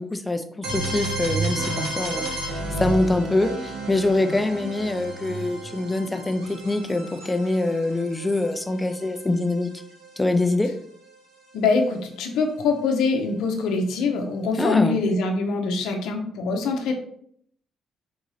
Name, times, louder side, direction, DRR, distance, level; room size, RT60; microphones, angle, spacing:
voice 1, 0.0-9.7 10.2-10.7 14.6-15.0, left 2 dB, 15° left, 8 dB, 0.5 m, -24 dB
sound 1, 0.6-10.4, right 2 dB, 85° right, 1.3 m, -32 dB
voice 2, 11.5-16.9, left 4 dB, 85° left, 3 dB, 0.7 m, -24 dB
3.9 x 2.7 x 4.8 m, 0.65 s
cardioid pair, 90°, 0 cm